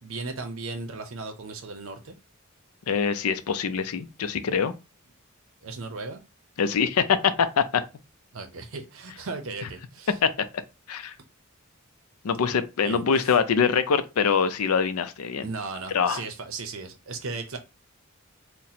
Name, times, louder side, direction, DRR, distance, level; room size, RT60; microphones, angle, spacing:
voice 1, 0.0-2.1 5.6-6.2 8.3-10.2 12.8-13.0 15.4-17.6, right 3 dB, 70° right, 0.6 m, -36 dB
voice 2, 2.9-4.7 6.6-7.8 10.2-10.3 10.9-11.1 12.2-15.4 15.9-16.2, left 6 dB, 90° left, 0.5 m, -24 dB
2.8 x 2.1 x 4.0 m
head